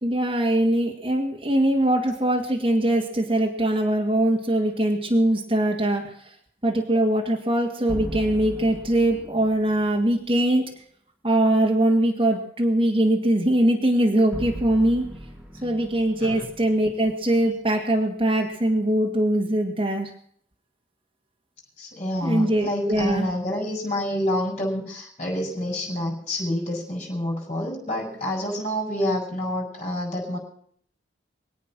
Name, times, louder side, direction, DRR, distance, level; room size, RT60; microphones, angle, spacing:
voice 1, 0.0-6.0 6.6-10.6 11.2-15.0 15.6-20.1 22.2-23.3, right 1 dB, 30° right, 0 dB, 2.1 m, -22 dB
sound 1, 7.9-10.1 14.3-17.5, right 1 dB, 5° right, 2.1 m, -37 dB
voice 2, 21.8-30.4, left 1 dB, 35° left, -1 dB, 6.9 m, -28 dB
25.0 x 8.5 x 6.2 m, 0.63 s
head